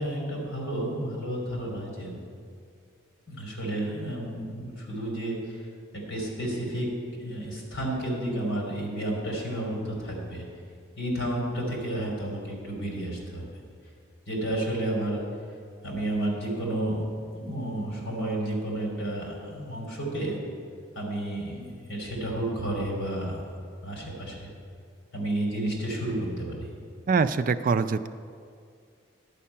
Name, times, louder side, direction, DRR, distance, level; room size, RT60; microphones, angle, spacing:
voice 1, 0.0-2.2 3.3-5.6 5.9-10.4 11.0-13.5 14.3-15.2 15.8-17.1 17.3-20.4 20.9-23.4 23.8-24.5 25.1-26.7, right 1 dB, 75° left, -2 dB, 3.2 m, -31 dB
voice 2, 27.1-28.1, right 5 dB, 40° right, 10 dB, 0.3 m, -24 dB
11.0 x 5.5 x 8.5 m, 2.3 s
head